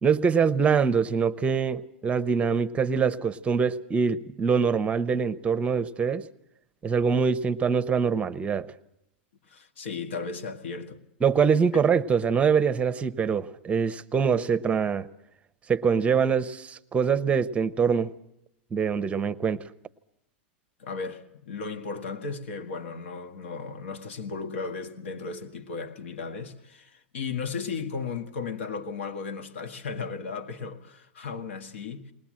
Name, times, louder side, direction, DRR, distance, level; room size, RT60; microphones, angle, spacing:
voice 1, 0.0-6.2 6.8-8.7 11.2-15.1 15.7-18.1 18.7-19.6, right 6 dB, 20° right, 0.8 m, -24 dB
voice 2, 9.5-11.0 20.8-32.1, left 5 dB, 80° left, 1.7 m, -35 dB
21.0 x 19.0 x 7.5 m
hypercardioid pair, 115°, 6 cm